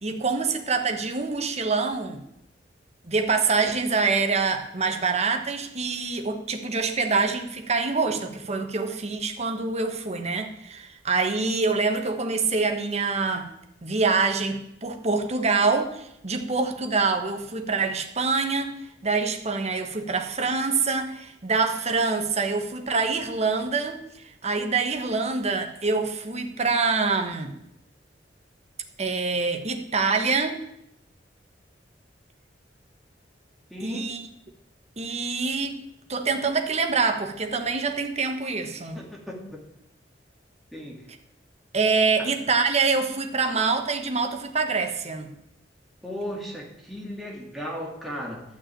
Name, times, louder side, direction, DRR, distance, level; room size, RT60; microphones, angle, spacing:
voice 1, 0.0-2.2 3.1-13.5 13.8-18.7 19.0-27.5 29.0-30.6 33.8-34.3 35.0-35.8 36.1-39.0 41.7-45.3, right 4 dB, 40° right, 6 dB, 1.3 m, -25 dB
voice 2, 33.7-34.1 38.9-39.6 40.7-41.1 42.2-42.3 46.0-48.4, equal, ahead, -3 dB, 2.8 m, -36 dB
12.5 x 6.1 x 8.9 m, 0.81 s
head